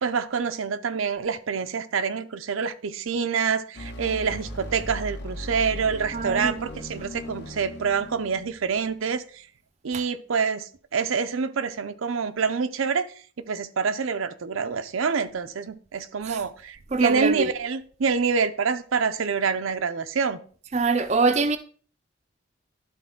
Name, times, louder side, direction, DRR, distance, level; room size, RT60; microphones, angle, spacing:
voice 1, 0.0-9.2 9.8-13.1 13.5-20.4, right 5 dB, 85° right, 0.6 m, -26 dB
sound 1, 3.7-9.0, equal, 55° left, 1.3 m, -38 dB
voice 2, 6.1-6.7 9.9-10.0 16.2-16.4 16.9-17.5 20.7-21.6, right 4 dB, 35° right, 0.4 m, -24 dB
11.5 x 4.2 x 3.6 m
head